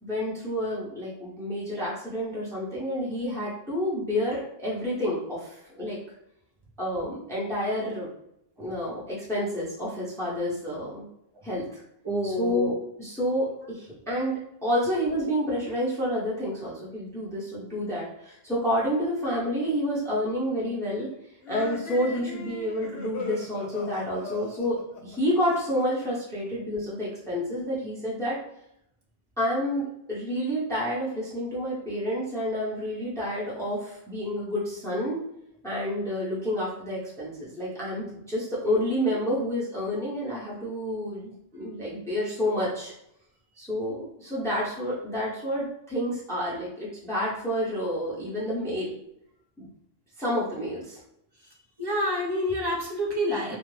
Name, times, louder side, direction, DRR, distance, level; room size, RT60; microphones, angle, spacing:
voice 1, 0.0-6.0 6.8-8.1 8.6-11.0 11.4-11.8 12.2-21.1 21.5-24.8 25.0-28.4 29.4-35.2 35.6-42.9 43.6-48.9 49.6-49.7 50.2-51.0, equal, 5° left, -7 dB, 0.7 m, -29 dB
voice 2, 12.0-12.7 51.8-53.6, left 1 dB, 35° right, -3 dB, 0.4 m, -27 dB
sound 1, 21.4-26.0, left 4 dB, 80° left, 0.8 m, -39 dB
2.4 x 2.1 x 3.1 m, 0.78 s
omnidirectional pair, 1.0 m